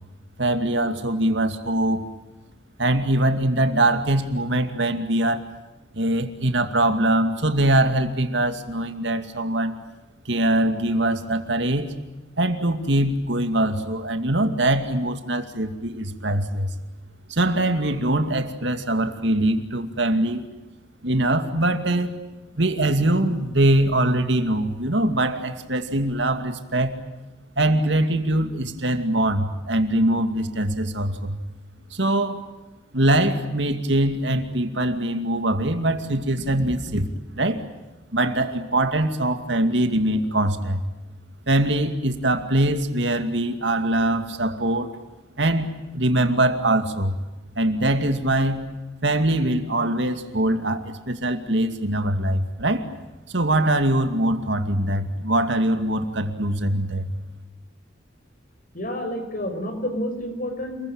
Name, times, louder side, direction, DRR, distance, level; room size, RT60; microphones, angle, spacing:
voice 1, 0.4-2.0 2.8-5.4 5.9-9.7 10.3-11.9 12.4-16.7 17.3-20.4 21.0-22.2 22.6-27.0 27.6-31.4 31.9-32.5 32.9-37.1 37.3-37.7 38.1-40.8 41.5-44.9 45.4-47.2 47.6-48.7 49.0-52.9 53.3-57.1, right 1 dB, 65° right, 7 dB, 2.4 m, -22 dB
voice 2, 58.7-60.8, equal, 45° left, 6 dB, 5.6 m, -29 dB
29.0 x 22.0 x 8.9 m, 1.1 s
head